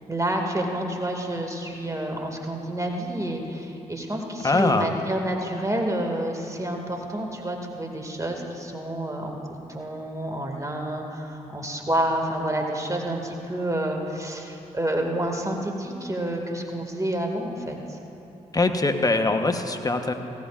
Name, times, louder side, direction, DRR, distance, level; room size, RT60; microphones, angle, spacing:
voice 1, 0.1-18.0, right 1 dB, 20° right, 2 dB, 2.1 m, -29 dB
voice 2, 4.4-4.9 18.5-20.1, left 2 dB, 20° left, 6 dB, 1.1 m, -22 dB
17.0 x 15.5 x 2.5 m, 2.9 s
hypercardioid pair, 40°, 17 cm